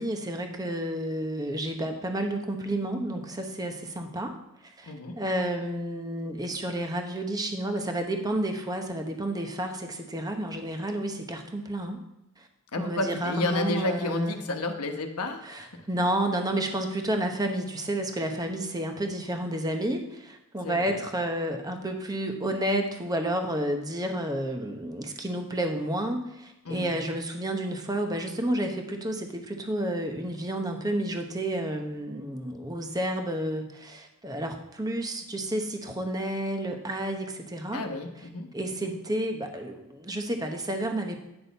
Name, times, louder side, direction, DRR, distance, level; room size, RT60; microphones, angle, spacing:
voice 1, 0.0-4.3 4.8-12.0 12.4-12.5 12.8-14.4 15.4-37.8 38.5-41.2, right 1 dB, 15° right, 4 dB, 1.0 m, -31 dB
voice 2, 4.9-5.2 12.7-15.8 20.6-21.0 26.6-27.0 37.7-38.5 38.8-38.9, left 2 dB, 75° left, 4 dB, 1.0 m, -31 dB
9.8 x 6.2 x 4.0 m, 0.91 s
head